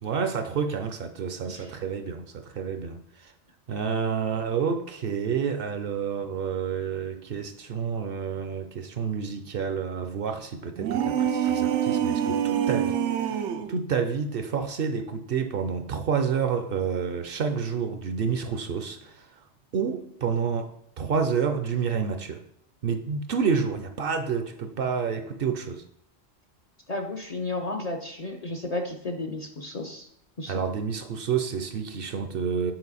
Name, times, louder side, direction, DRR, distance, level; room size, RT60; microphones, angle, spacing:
voice 1, 0.0-3.3 3.7-13.4 13.7-19.3 19.7-22.4 22.8-25.8 30.5-32.7, right 6 dB, 60° right, 7 dB, 0.7 m, -29 dB
sound 1, 10.8-13.7, right 9 dB, 90° right, 0.9 m, -25 dB
voice 2, 26.9-30.1 30.4-30.7, left 2 dB, 45° left, 4 dB, 0.5 m, -33 dB
7.8 x 4.4 x 4.1 m, 0.72 s
omnidirectional pair, 1.2 m